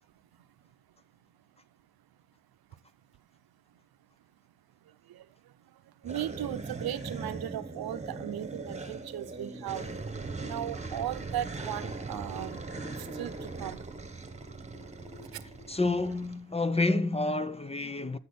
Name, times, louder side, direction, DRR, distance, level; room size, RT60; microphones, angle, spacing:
sound 1, 6.0-16.4, right 3 dB, 15° right, 1.4 m, -40 dB
voice 1, 6.0-9.8 10.4-12.6 13.1-13.8, right 12 dB, 65° right, 0.9 m, -37 dB
voice 2, 15.7-18.2, left 2 dB, 15° left, 0.6 m, -29 dB
13.0 x 5.7 x 4.2 m
cardioid pair, 80°, 41 cm